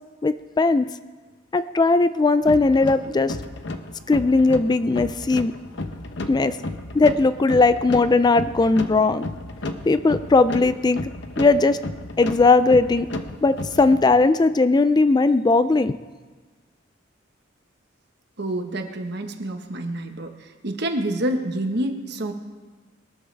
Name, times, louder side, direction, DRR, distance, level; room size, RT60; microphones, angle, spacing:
voice 1, 0.2-0.9 1.5-3.4 4.1-5.5 6.3-6.6 6.9-9.3 9.9-11.0 11.4-11.8 12.2-13.1 13.4-16.0, left 3 dB, 20° left, 13 dB, 0.3 m, -18 dB
sound 1, 2.4-14.3, left 2 dB, 65° left, 0.9 m, -33 dB
voice 2, 18.4-22.3, right 1 dB, 55° right, 5 dB, 1.3 m, -28 dB
21.5 x 13.0 x 3.4 m, 1.3 s
head